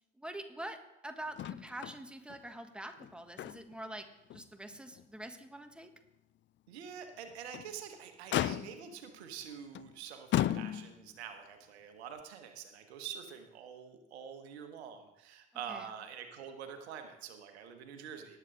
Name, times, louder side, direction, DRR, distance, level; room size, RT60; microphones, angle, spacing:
voice 1, 0.2-0.8 1.0-5.9 15.7-15.9, right 1 dB, 5° right, 7 dB, 1.4 m, -45 dB
Motor vehicle (road), 1.4-2.0 2.3-2.4 2.9-3.9 4.3-4.4 5.0-5.1 7.3-7.7 8.3-9.0 9.7-9.9 10.3-11.1 12.2-12.3, left 13 dB, 35° left, 0.4 m, -34 dB
voice 2, 6.7-18.4, right 8 dB, 75° right, 7 dB, 1.2 m, -46 dB
18.5 x 7.9 x 3.8 m, 0.89 s
figure-of-eight pair, 50°, 32 cm